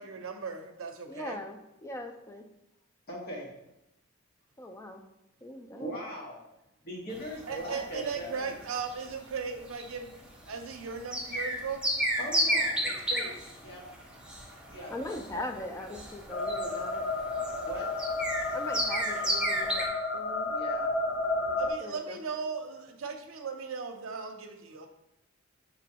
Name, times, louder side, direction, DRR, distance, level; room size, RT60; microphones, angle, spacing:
voice 1, 0.0-1.4 5.7-6.0 7.5-10.1 10.5-11.8 21.6-24.9, right 5 dB, 80° right, 5 dB, 0.6 m, -37 dB
voice 2, 1.1-2.4 4.6-5.0 5.4-6.0 14.9-17.0 18.5-19.8 20.1-20.5 21.8-22.2, left 1 dB, 15° left, 4 dB, 0.4 m, -40 dB
voice 3, 3.1-3.5 5.8-6.4 6.8-8.5 12.2-13.3 13.6-13.8 14.7-15.7 17.6-17.9 20.5-20.9, equal, 50° left, -3 dB, 1.3 m, -40 dB
sound 1, 7.1-19.9, equal, 5° right, 0.8 m, -33 dB
sound 2, 16.3-21.7, left 2 dB, 85° left, 0.7 m, -32 dB
6.1 x 3.0 x 2.8 m, 0.86 s
head